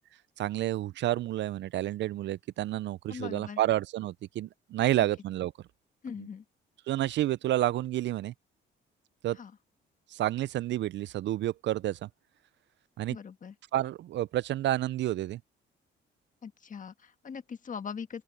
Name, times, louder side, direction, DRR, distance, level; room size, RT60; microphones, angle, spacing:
voice 1, 0.4-5.5 6.9-8.3 9.2-9.4 10.1-12.1 13.0-13.2 13.7-15.4, right 14 dB, 65° right, 0.4 m, -30 dB
voice 2, 3.1-3.6 6.0-6.4 9.3-9.5 13.1-13.5 16.4-18.2, left 6 dB, 40° left, 1.4 m, -41 dB
open air
cardioid pair, 90°, 20 cm